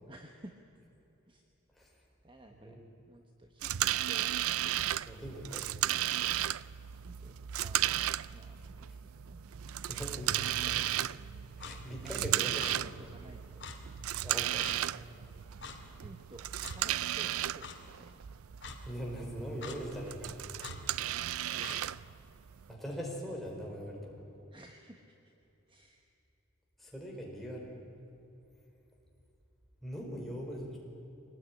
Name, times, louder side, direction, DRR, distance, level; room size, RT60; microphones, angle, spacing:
voice 1, 0.1-0.6 1.3-1.4 2.2-2.8 3.1-3.7 4.1-4.8 7.0-9.9 12.0-13.7 16.0-18.2 21.5-21.9 24.5-25.2 25.7-26.1, right 1 dB, 25° right, 4 dB, 1.2 m, -54 dB
voice 2, 2.5-2.8 5.0-5.7 9.9-10.9 11.6-12.5 14.2-14.7 18.8-20.4 22.7-24.1 26.8-27.8 29.8-30.8, equal, ahead, -3 dB, 4.7 m, -41 dB
sound 1, 3.6-22.7, right 12 dB, 85° right, 0.5 m, -35 dB
Clock, 11.6-11.8 12.6-12.8 13.6-13.8 14.6-14.8 15.6-15.8 16.6-16.8 17.6-17.8 18.6-18.8 19.6-19.8 20.6-20.8 21.6-21.8, left 5 dB, 55° left, 2.4 m, -44 dB
24.0 x 19.0 x 9.9 m, 2.9 s
head